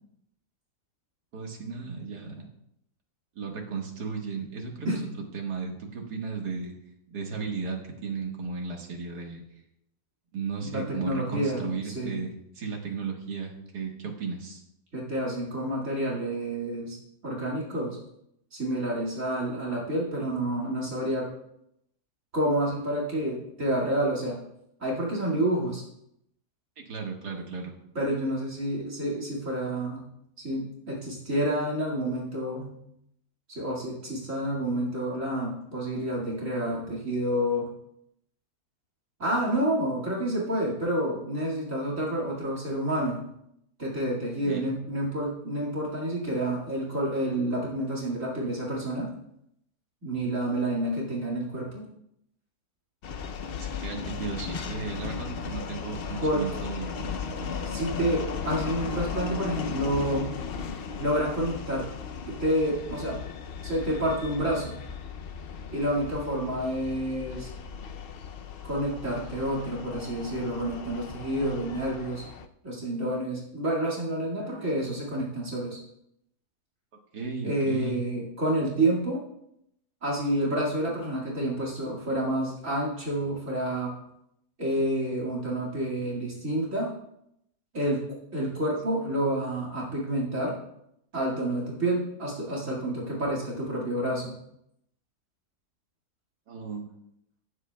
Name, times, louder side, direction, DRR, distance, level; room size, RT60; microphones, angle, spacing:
voice 1, 1.3-2.5 3.4-6.7 7.1-9.4 10.3-14.6 26.8-27.7 44.4-44.7 53.6-57.6 74.4-74.7 77.1-78.0 96.5-96.9, right 5 dB, 75° right, 1 dB, 2.1 m, -35 dB
voice 2, 10.6-12.2 14.9-17.0 17.2-18.0 18.5-21.3 22.3-24.4 24.8-25.8 27.9-30.1 30.4-32.7 33.5-37.7 39.2-43.2 43.8-49.1 50.0-51.8 56.2-56.5 57.7-60.4 61.0-61.9 62.2-63.2 63.6-64.8 65.7-67.5 68.6-72.2 72.6-75.8 77.4-79.2 80.0-83.9 84.6-86.9 87.7-90.6 91.1-94.3, right 1 dB, 50° right, -3 dB, 2.4 m, -29 dB
sound 1, 53.0-72.5, left 6 dB, 75° left, 0.5 m, -36 dB
17.0 x 7.8 x 2.2 m, 0.78 s
omnidirectional pair, 1.7 m